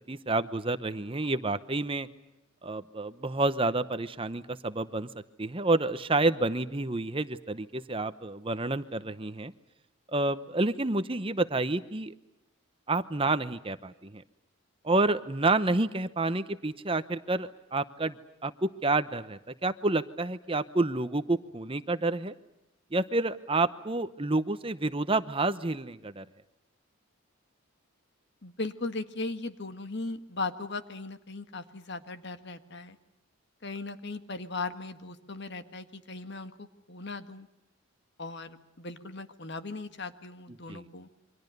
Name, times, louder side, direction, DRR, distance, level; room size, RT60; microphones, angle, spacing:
voice 1, 0.1-2.1 2.6-5.1 5.4-9.5 10.1-12.1 12.9-14.2 14.8-18.2 18.4-22.3 22.9-26.2 40.7-40.8, right 2 dB, 25° right, 12 dB, 0.8 m, -29 dB
voice 2, 28.4-33.0 33.6-37.5 38.2-41.1, left 3 dB, 55° left, 9 dB, 1.7 m, -38 dB
28.5 x 24.5 x 6.7 m, 0.90 s
head